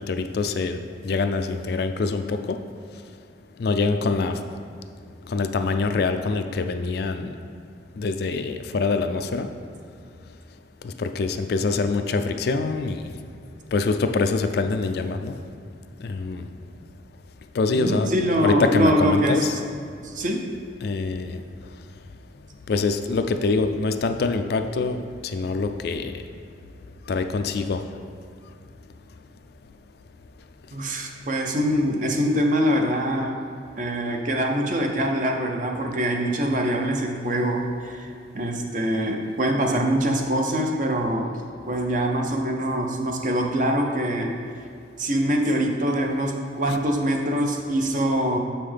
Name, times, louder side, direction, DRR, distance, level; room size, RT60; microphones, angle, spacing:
voice 1, 0.0-2.6 3.6-4.4 5.3-7.3 8.0-9.5 10.8-13.1 13.7-15.4 16.0-16.4 17.5-18.1 18.4-19.6 20.8-21.4 22.7-26.2 27.1-27.8 46.7-46.8, left 4 dB, 55° left, 7 dB, 0.3 m, -25 dB
voice 2, 17.7-19.5 20.0-20.5 30.7-33.4 33.8-41.3 41.7-44.3 45.0-48.4, equal, 45° right, 2 dB, 0.6 m, -24 dB
7.1 x 5.6 x 3.4 m, 2.3 s
head